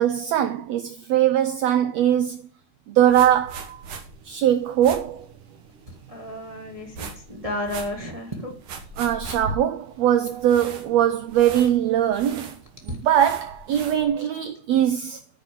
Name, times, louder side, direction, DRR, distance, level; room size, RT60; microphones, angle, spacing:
voice 1, 0.0-2.4 2.9-3.8 4.2-5.3 9.0-12.5 13.0-15.2, right 10 dB, 90° right, 1.5 m, -21 dB
sound 1, 3.0-14.1, right 3 dB, 70° right, 3.1 m, -40 dB
voice 2, 5.9-8.5 10.6-10.7 12.9-13.0 14.2-14.3, left 1 dB, 25° right, 0.7 m, -33 dB
10.0 x 5.1 x 7.4 m
omnidirectional pair, 3.8 m